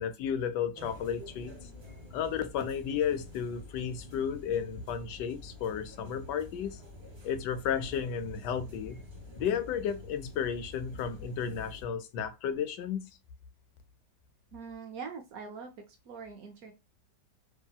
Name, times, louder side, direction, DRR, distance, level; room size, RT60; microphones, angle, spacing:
voice 1, 0.0-1.5 2.1-6.8 7.2-9.0 9.4-13.1, left 7 dB, 80° left, 1.2 m, -33 dB
sound 1, 0.7-11.8, left 2 dB, 40° right, 0.3 m, -49 dB
voice 2, 14.5-16.7, right 5 dB, 70° right, 0.9 m, -43 dB
2.8 x 2.8 x 2.2 m
omnidirectional pair, 1.9 m